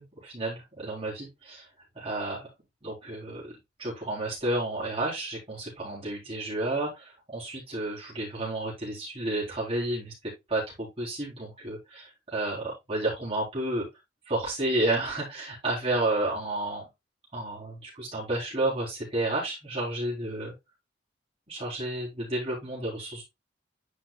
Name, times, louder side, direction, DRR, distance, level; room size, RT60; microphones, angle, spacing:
voice 1, 0.0-1.6 1.9-2.5 2.8-3.5 3.8-13.9 14.3-16.8 17.3-20.5 21.5-23.2, right 2 dB, 30° right, -5 dB, 3.8 m, -31 dB
10.5 x 4.9 x 2.4 m, 0.20 s
head